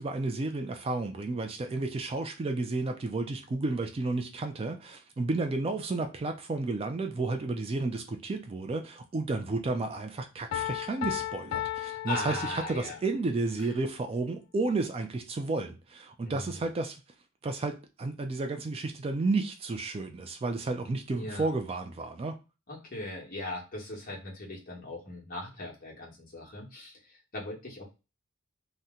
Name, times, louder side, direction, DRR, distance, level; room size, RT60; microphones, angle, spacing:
voice 1, 0.0-17.0 17.4-22.4, right 3 dB, 30° right, 0.3 m, -32 dB
Piano, 10.5-13.1, left 12 dB, 65° left, 0.4 m, -35 dB
voice 2, 11.8-13.0 16.2-16.7 21.2-21.5 22.7-27.9, left 2 dB, 45° left, 1.1 m, -39 dB
2.8 x 2.1 x 3.5 m
head